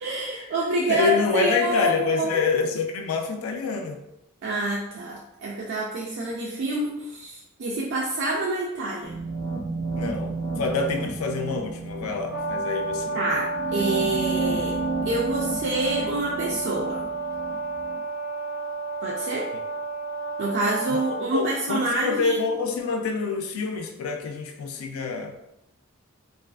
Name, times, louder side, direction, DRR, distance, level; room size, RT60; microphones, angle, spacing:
voice 1, 0.0-2.3 4.4-9.2 13.1-14.8 15.1-17.0 19.0-19.5 20.4-22.4, right 2 dB, 55° right, -3 dB, 0.3 m, -27 dB
voice 2, 0.9-4.0 9.9-13.2 20.9-21.0 21.3-25.3, left 4 dB, 80° left, 4 dB, 0.4 m, -27 dB
sound 1, 9.0-18.0, right 4 dB, 90° right, 0.9 m, -32 dB
Brass instrument, 12.3-21.3, right 2 dB, ahead, 0.5 m, -31 dB
2.4 x 2.3 x 2.2 m, 0.84 s
head